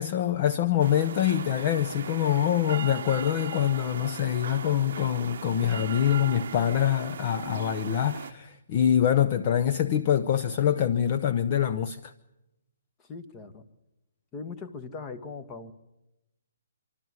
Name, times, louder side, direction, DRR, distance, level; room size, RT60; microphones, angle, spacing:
voice 1, 0.0-12.1, left 10 dB, 35° left, 0.7 m, -25 dB
sound 1, 0.8-8.3, right 7 dB, 60° right, 0.8 m, -38 dB
voice 2, 13.0-13.6 14.3-15.7, left 4 dB, 20° left, 1.4 m, -40 dB
26.0 x 13.0 x 9.5 m
hypercardioid pair, 150°, 0 cm